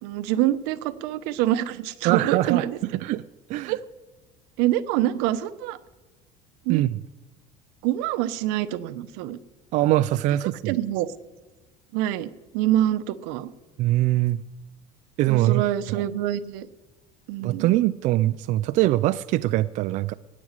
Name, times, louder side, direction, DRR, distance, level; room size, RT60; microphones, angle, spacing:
voice 1, 0.0-2.8 3.6-3.8 4.6-5.8 6.6-6.8 7.8-9.4 10.7-11.1 11.9-13.5 15.3-16.7 17.3-17.7, right 13 dB, 75° right, 12 dB, 0.9 m, -25 dB
voice 2, 2.0-2.7 3.0-3.2 3.5-3.8 6.7-7.0 9.7-10.8 13.8-14.4 15.2-15.6 15.9-16.0 17.4-20.1, right 15 dB, 45° right, 12 dB, 0.4 m, -22 dB
17.0 x 6.2 x 9.6 m, 1.2 s
cardioid pair, 165°, 17 cm